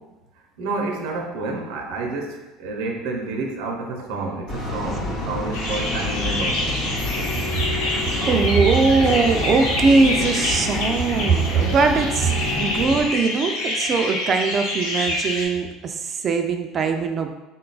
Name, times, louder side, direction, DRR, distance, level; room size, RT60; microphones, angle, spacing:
voice 1, 0.6-6.8, right 3 dB, 85° right, 2 dB, 0.6 m, -29 dB
sound 1, 4.5-13.1, left 1 dB, 35° left, 0.9 m, -29 dB
sound 2, 5.5-15.5, left 1 dB, 90° left, 0.9 m, -27 dB
sound 3, 7.0-12.9, left 8 dB, 50° left, 0.3 m, -35 dB
voice 2, 8.2-17.3, right 4 dB, 35° right, 5 dB, 0.3 m, -20 dB
3.7 x 2.3 x 3.8 m, 1.1 s
cardioid pair, 125°, 0 cm